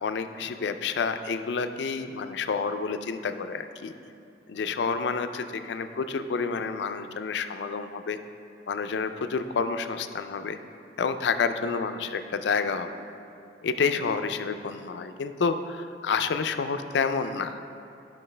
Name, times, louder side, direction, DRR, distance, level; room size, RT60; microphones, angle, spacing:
voice 1, 0.0-3.9 4.5-8.2 8.7-10.6 11.0-12.9 13.6-17.6, left 5 dB, 75° left, 9 dB, 0.4 m, -29 dB
10.5 x 6.0 x 3.3 m, 2.6 s
head